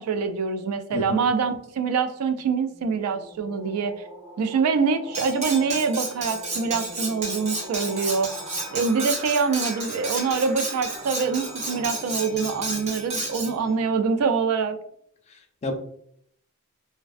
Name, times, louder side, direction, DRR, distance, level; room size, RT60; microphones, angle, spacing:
voice 1, 0.0-3.9 4.4-8.3 8.7-14.8, right 5 dB, 75° right, 9 dB, 0.3 m, -25 dB
voice 2, 0.9-1.2 15.3-15.8, left 2 dB, 30° left, 4 dB, 0.3 m, -31 dB
sound 1, 2.2-14.9, right 2 dB, 50° right, 1.0 m, -42 dB
Cutlery silverware, 5.1-13.5, right 2 dB, 30° right, 0.6 m, -32 dB
2.4 x 2.2 x 2.4 m, 0.67 s
head